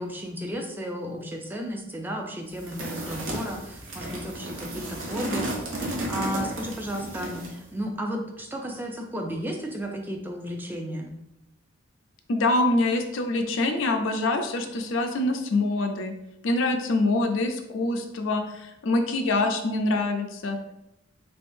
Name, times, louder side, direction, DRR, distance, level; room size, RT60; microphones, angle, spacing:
voice 1, 0.0-5.5 5.8-11.1, equal, 10° right, 2 dB, 0.4 m, -33 dB
sound 1, 2.6-7.6, right 1 dB, 75° right, 0.9 m, -33 dB
voice 2, 12.3-16.1 16.4-20.6, left 2 dB, 75° left, 5 dB, 0.5 m, -25 dB
3.5 x 3.4 x 2.6 m, 0.87 s
head